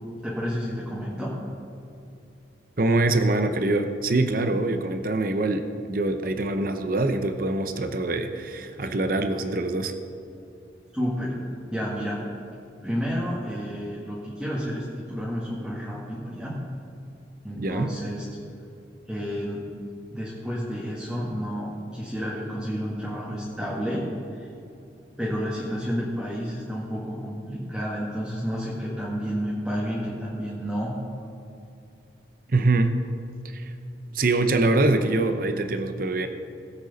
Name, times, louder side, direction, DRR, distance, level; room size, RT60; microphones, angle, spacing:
voice 1, 0.2-1.3 10.9-12.2 12.8-16.5 17.4-18.2 19.1-19.6 20.1-24.0 24.3-24.5 25.2-30.9, equal, 5° right, -7 dB, 1.7 m, -30 dB
voice 2, 2.8-9.9 17.6-17.9 32.5-33.0 33.4-33.7 34.1-36.3, right 2 dB, 50° right, 7 dB, 0.7 m, -24 dB
20.0 x 8.0 x 4.1 m, 2.7 s
head